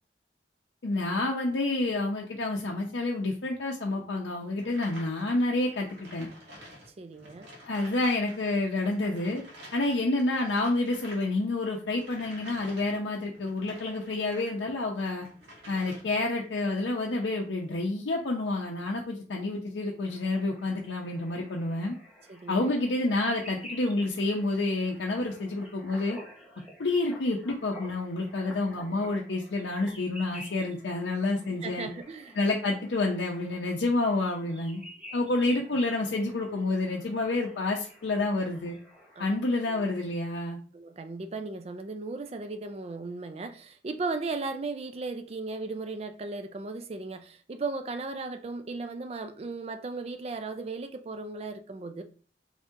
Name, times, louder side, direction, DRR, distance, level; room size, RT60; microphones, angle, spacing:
voice 1, 0.8-6.3 7.7-9.4 9.7-15.3 15.7-22.0 22.5-26.2 26.8-31.9 32.4-34.8 35.1-38.8 39.2-40.6, left 2 dB, 85° left, 0.6 m, -29 dB
sound 1, 4.6-8.4 8.7-14.6 14.9-16.4, equal, 80° right, 1.4 m, -50 dB
voice 2, 6.9-7.5 22.3-22.7 31.6-32.4 39.2-39.3 39.7-39.9 40.7-52.0, right 3 dB, 35° right, 0.4 m, -36 dB
sound 2, 20.1-39.2, equal, 5° right, 0.9 m, -50 dB
3.4 x 2.7 x 3.6 m
head